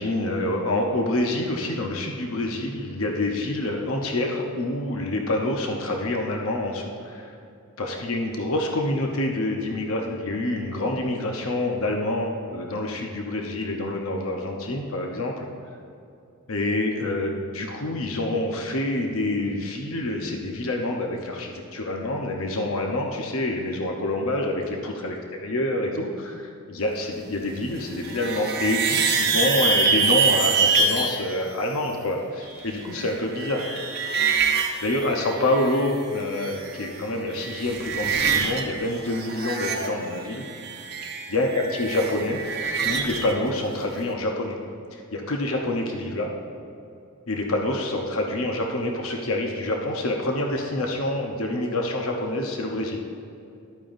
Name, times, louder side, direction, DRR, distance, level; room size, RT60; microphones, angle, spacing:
voice 1, 0.0-7.3 7.8-15.5 16.5-25.2 25.4-33.7 34.8-40.4 41.3-42.4 42.8-44.6 44.9-46.3 47.3-53.0, left 1 dB, 85° left, 1 dB, 0.9 m, -27 dB
sound 1, 27.8-31.2 32.6-35.9 36.2-37.0 37.3-38.6 38.9-43.3, right 5 dB, 50° right, 0.8 m, -25 dB
12.0 x 8.9 x 2.6 m, 2.6 s
head